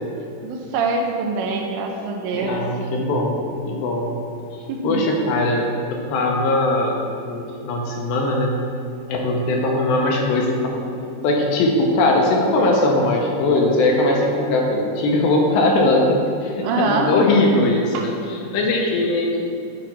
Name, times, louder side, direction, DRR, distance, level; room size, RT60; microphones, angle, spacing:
voice 1, 0.4-2.6 4.7-5.1 16.6-17.1 17.9-18.1, right 3 dB, 80° right, 2 dB, 2.9 m, -24 dB
voice 2, 2.3-4.2 4.5-7.0 7.3-8.6 9.1-10.8 11.2-19.4, left 2 dB, 80° left, 0 dB, 2.8 m, -20 dB
9.2 x 3.9 x 5.9 m, 2.5 s
omnidirectional pair, 5.3 m